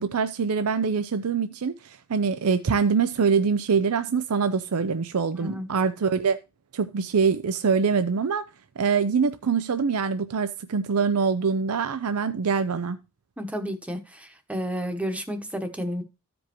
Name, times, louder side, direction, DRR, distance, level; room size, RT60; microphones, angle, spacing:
voice 1, 0.0-6.4 6.7-8.4 8.8-13.0, right 5 dB, 75° right, 0.5 m, -24 dB
voice 2, 5.3-5.7 13.4-16.0, equal, 5° right, 1.0 m, -31 dB
14.0 x 5.2 x 3.0 m
head